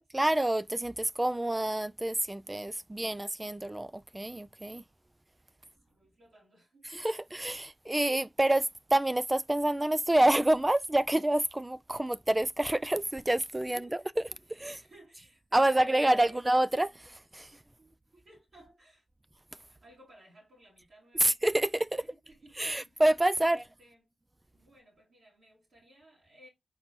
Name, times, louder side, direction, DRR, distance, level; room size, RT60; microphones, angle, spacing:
voice 1, 0.1-4.8 6.9-14.2 14.6-14.8 15.5-17.6 21.2-22.0 22.6-23.6, right 1 dB, 20° right, 0.3 m, -28 dB
voice 2, 5.6-7.0 13.6-16.5 16.9-17.0 17.4-19.0 19.7-21.4 22.0-23.0 23.4-24.2 24.5-26.5, right 1 dB, 75° right, 2.5 m, -59 dB
4.3 x 4.0 x 2.9 m
supercardioid pair, 40°, 0 cm